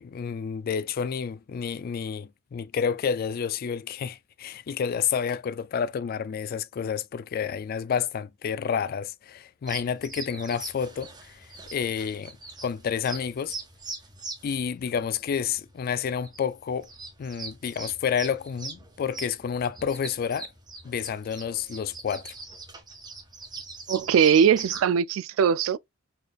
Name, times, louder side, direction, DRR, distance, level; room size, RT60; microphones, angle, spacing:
voice 1, 0.0-12.4 12.6-13.6 14.4-16.9 17.2-20.5 20.8-22.3, left 7 dB, 45° left, 0.3 m, -30 dB
sound 1, 9.7-24.8, right 3 dB, 20° right, 1.2 m, -42 dB
voice 2, 23.9-25.8, right 7 dB, 80° right, 0.3 m, -21 dB
4.2 x 3.3 x 2.3 m
head